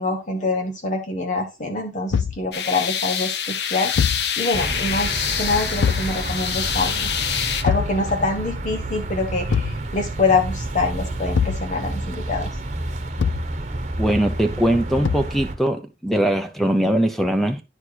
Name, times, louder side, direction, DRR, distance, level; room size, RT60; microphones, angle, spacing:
voice 1, 0.0-7.1 7.6-12.5, left 3 dB, 45° left, 1.3 m, -25 dB
Thump thud, 2.1-2.5 3.9-4.3 5.8-6.1 7.6-8.0 9.5-9.8 11.3-11.7 13.2-13.5 15.0-15.4, left 6 dB, 90° left, 0.3 m, -22 dB
sound 1, 2.5-7.6, left 8 dB, 65° left, 0.8 m, -26 dB
sound 2, 4.5-15.6, right 2 dB, 40° right, 1.1 m, -29 dB
voice 2, 14.0-17.6, right 1 dB, ahead, 0.8 m, -21 dB
9.8 x 4.5 x 4.5 m
head